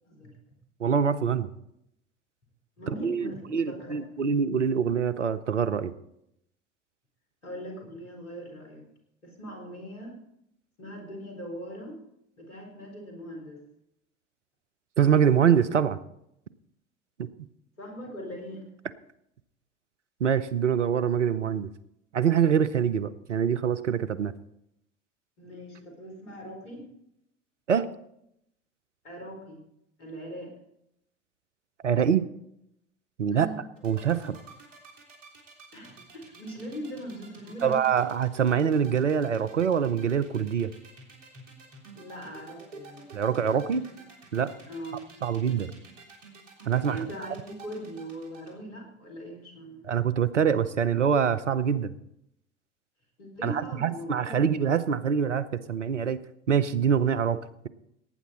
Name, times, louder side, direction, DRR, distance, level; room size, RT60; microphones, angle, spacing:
voice 1, 0.8-1.5 3.0-5.9 15.0-16.0 17.2-17.3 20.2-21.7 22.1-24.3 27.7-27.9 31.8-32.2 33.2-33.5 33.8-34.4 37.6-40.7 43.1-43.8 44.3-44.5 45.2-45.7 46.6-47.0 49.8-51.9 53.4-56.2 56.5-57.4, right 7 dB, 85° right, 14 dB, 0.7 m, -24 dB
voice 2, 2.8-4.0 7.4-8.8 9.2-10.2 10.8-12.0 12.4-13.6 17.8-18.6 25.4-26.8 29.0-29.6 30.0-30.5 33.3-33.6 35.7-37.8 41.9-43.1 44.7-45.0 46.8-49.9 53.2-54.4, equal, 80° left, 2 dB, 4.2 m, -40 dB
sound 1, 33.8-48.5, right 4 dB, 65° right, 3.5 m, -49 dB
18.0 x 9.4 x 4.2 m, 0.77 s
figure-of-eight pair, 65°, 35 cm